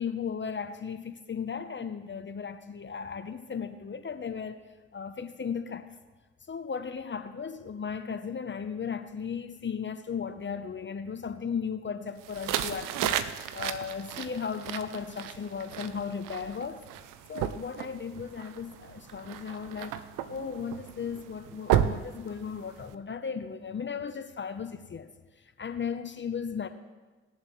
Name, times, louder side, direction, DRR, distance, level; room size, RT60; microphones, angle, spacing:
voice 1, 0.0-4.6 4.9-5.9 6.5-16.9 17.3-20.0 20.3-25.1 25.6-26.7, left 6 dB, 35° left, 9 dB, 0.8 m, -36 dB
sound 1, 12.2-22.9, right 10 dB, 80° right, 0.6 m, -34 dB
19.5 x 7.3 x 3.2 m, 1.3 s
hypercardioid pair, 40°, 32 cm